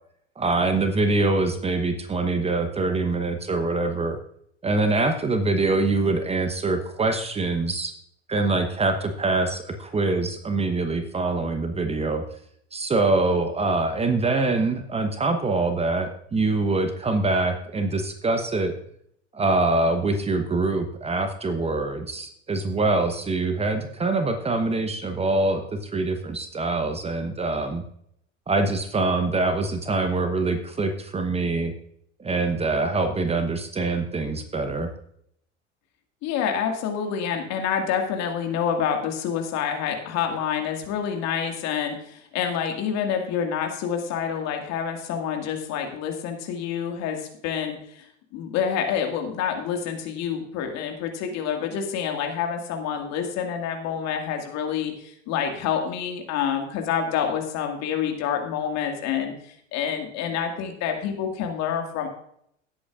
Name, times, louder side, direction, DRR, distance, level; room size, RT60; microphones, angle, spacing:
voice 1, 0.4-4.2 4.6-7.9 8.3-12.2 12.7-18.7 19.3-27.8 28.5-31.7 32.2-34.9, right 3 dB, 15° right, 7 dB, 1.0 m, -24 dB
voice 2, 36.2-48.1 48.3-62.1, left 8 dB, 45° left, 4 dB, 2.1 m, -27 dB
17.5 x 8.4 x 2.5 m, 0.71 s
figure-of-eight pair, 80°, 37 cm